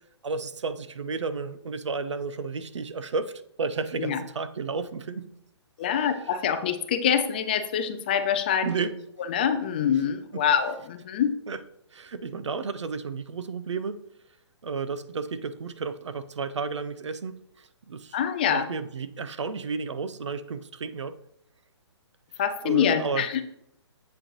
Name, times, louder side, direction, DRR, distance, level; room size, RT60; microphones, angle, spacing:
voice 1, 0.2-3.3 3.6-5.3 5.8-5.9 8.6-8.9 10.3-10.4 11.5-11.6 11.9-14.0 14.6-17.4 17.9-18.2 18.5-21.2 22.6-23.3, right 4 dB, 90° right, 12 dB, 0.7 m, -32 dB
voice 2, 5.8-8.7 9.3-11.3 18.1-18.7 22.4-23.4, left 8 dB, 20° left, 9 dB, 0.4 m, -25 dB
7.8 x 6.4 x 3.1 m, 0.76 s
hypercardioid pair, 165°, 15 cm